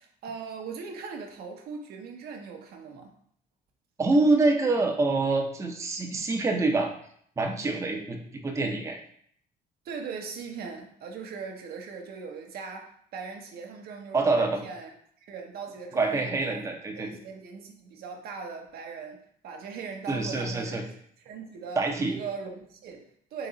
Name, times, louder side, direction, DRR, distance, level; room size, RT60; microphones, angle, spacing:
voice 1, 0.0-3.1 9.8-14.9 15.2-20.8 21.3-23.5, right 5 dB, 65° right, 2 dB, 0.8 m, -40 dB
voice 2, 4.0-6.9 7.4-9.0 14.1-14.6 15.9-17.1 20.1-20.8 21.8-22.2, right 3 dB, 15° right, 2 dB, 0.6 m, -26 dB
3.9 x 2.9 x 3.8 m, 0.64 s
cardioid pair, 110°, 17 cm